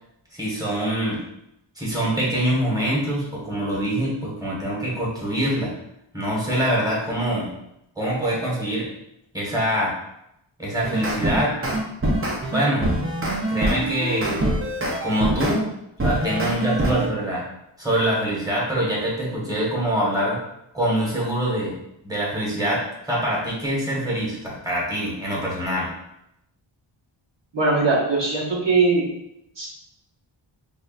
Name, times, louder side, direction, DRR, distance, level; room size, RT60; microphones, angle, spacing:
voice 1, 0.3-1.2 1.8-5.7 6.1-7.5 8.0-8.9 9.3-9.9 10.6-11.6 12.5-12.9 13.5-14.4 15.0-15.7 16.0-17.4 17.8-20.4 20.7-21.8 22.0-25.9, right 1 dB, 5° right, -5 dB, 1.3 m, -24 dB
sound 1, 10.6-15.6 16.0-17.1, right 1 dB, 25° right, 0.6 m, -24 dB
voice 2, 27.5-29.1 29.6-29.7, right 3 dB, 60° right, -5 dB, 0.9 m, -20 dB
5.5 x 2.2 x 2.4 m, 0.81 s
wide cardioid pair, 85°, 49 cm